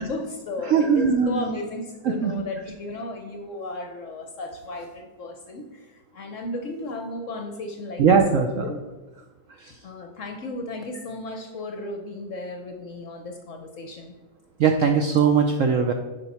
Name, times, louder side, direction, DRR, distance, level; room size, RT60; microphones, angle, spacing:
voice 1, 0.0-8.2 8.6-8.8 9.8-14.2, left 2 dB, 60° left, 5 dB, 0.9 m, -34 dB
voice 2, 0.6-1.6 2.0-2.3 8.0-8.7 9.6-9.8 14.6-15.9, right 6 dB, 75° right, 5 dB, 0.7 m, -20 dB
10.0 x 5.1 x 4.2 m, 1.2 s
omnidirectional pair, 1.9 m